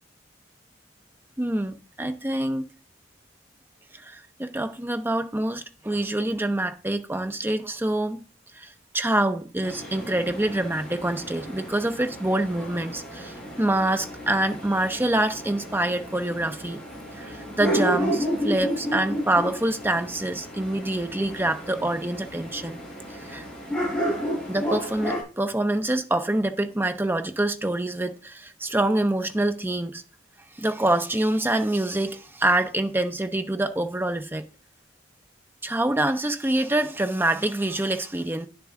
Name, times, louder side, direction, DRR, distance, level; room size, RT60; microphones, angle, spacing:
voice 1, 1.4-2.6 3.9-8.2 8.6-16.8 17.2-22.8 23.2-23.5 24.5-30.0 30.6-34.4 35.6-38.5, right 1 dB, 10° right, 0.7 m, -26 dB
sound 1, 9.6-25.2, equal, 5° left, 5.8 m, -32 dB
10.0 x 6.8 x 3.7 m
head